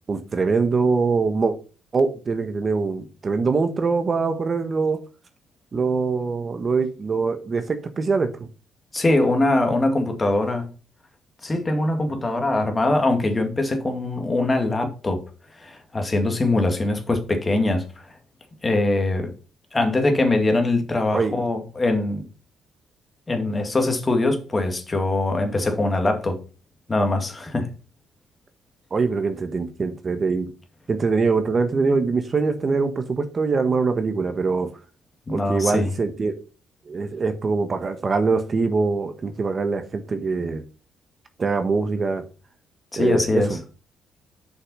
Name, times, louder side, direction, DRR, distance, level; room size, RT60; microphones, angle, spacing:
voice 1, 0.1-1.5 1.9-5.0 5.7-8.3 21.1-21.4 28.9-30.5 30.9-34.7 35.3-36.4 36.9-40.6 41.4-42.2 43.0-43.6, right 4 dB, 40° right, 1.2 m, -23 dB
voice 2, 8.9-10.7 11.4-15.2 15.6-17.8 18.6-19.3 19.7-22.2 23.3-26.4 26.9-27.7 35.3-35.9 42.9-43.6, left 2 dB, 25° left, 2.0 m, -22 dB
6.8 x 5.5 x 5.4 m
cardioid pair, 90°, 0 cm